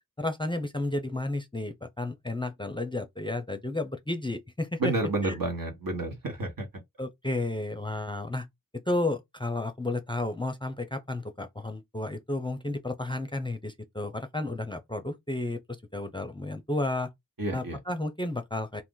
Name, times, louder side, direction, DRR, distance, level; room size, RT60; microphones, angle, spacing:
voice 1, 0.2-4.9 5.2-5.4 7.0-8.5 8.9-17.1 17.5-18.8, left 2 dB, 15° left, 0.5 m, -32 dB
voice 2, 4.8-6.7 17.4-17.8, right 2 dB, 65° right, 1.2 m, -30 dB
2.5 x 2.5 x 3.7 m
cardioid pair, 45°, 36 cm